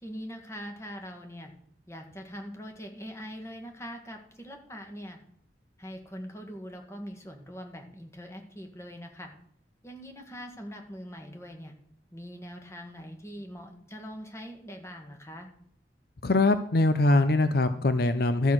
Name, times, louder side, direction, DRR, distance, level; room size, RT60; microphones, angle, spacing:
voice 1, 0.0-1.5 1.9-5.2 5.8-9.3 9.8-11.7 12.1-15.5, equal, 15° left, 4 dB, 1.7 m, -42 dB
voice 2, 16.2-18.5, left 2 dB, 55° left, 10 dB, 0.6 m, -23 dB
13.0 x 8.0 x 6.1 m, 0.68 s
head